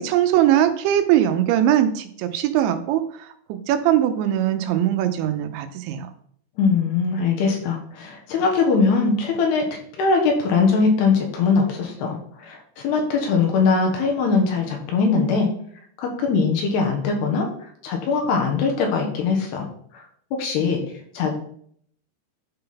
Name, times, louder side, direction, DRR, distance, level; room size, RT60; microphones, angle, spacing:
voice 1, 0.0-3.0 3.5-6.1, right 11 dB, 90° right, 8 dB, 3.1 m, -20 dB
voice 2, 6.6-9.7 10.0-15.5 16.0-17.5 17.8-19.7 19.9-20.0 20.3-20.8 21.1-21.3, left 4 dB, 70° left, 2 dB, 3.2 m, -21 dB
11.5 x 3.9 x 5.5 m, 0.62 s
omnidirectional pair, 5.3 m